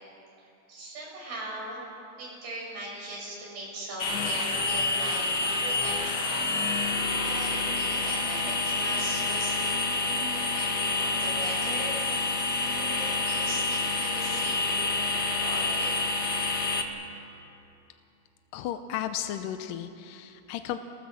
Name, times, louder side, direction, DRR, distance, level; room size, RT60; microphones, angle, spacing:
voice 1, 0.7-1.9 2.2-6.3 7.2-12.0 12.3-16.1, right 1 dB, 80° right, -3 dB, 8.3 m, -40 dB
sound 1, 4.0-16.8, left 3 dB, 60° left, 1.0 m, -28 dB
sound 2, 6.2-15.0, right 2 dB, 60° right, 4.5 m, -45 dB
voice 2, 18.5-20.8, left 11 dB, 75° left, 8 dB, 2.2 m, -34 dB
28.5 x 19.5 x 7.4 m, 2.8 s
omnidirectional pair, 4.5 m